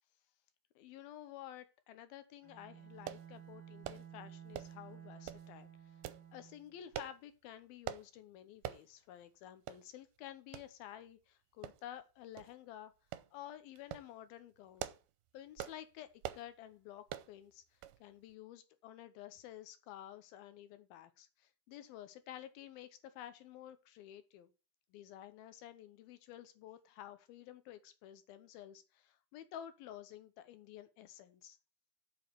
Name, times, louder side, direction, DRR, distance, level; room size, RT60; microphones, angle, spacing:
voice 1, 0.8-6.0 6.3-12.9 13.3-14.9 15.3-24.5 24.9-31.6, left 11 dB, 80° left, 12 dB, 2.6 m, -52 dB
Bowed string instrument, 2.4-6.7, right 9 dB, 55° right, 1.2 m, -54 dB
sound 1, 3.1-3.3 3.8-4.1 4.5-4.8 5.3-5.5 6.0-6.2 6.9-7.2 7.9-8.1 8.6-8.8 9.2-9.3 9.7-9.8 10.5-10.7 11.6-12.0 12.4-12.5 13.1-13.3 13.8-14.1 14.6-15.1 15.6-15.8 16.2-16.5 17.1-17.3 17.8-18.0 18.3-18.4, right 13 dB, 80° right, 2.5 m, -44 dB
8.3 x 7.1 x 6.0 m, 0.32 s
omnidirectional pair, 4.5 m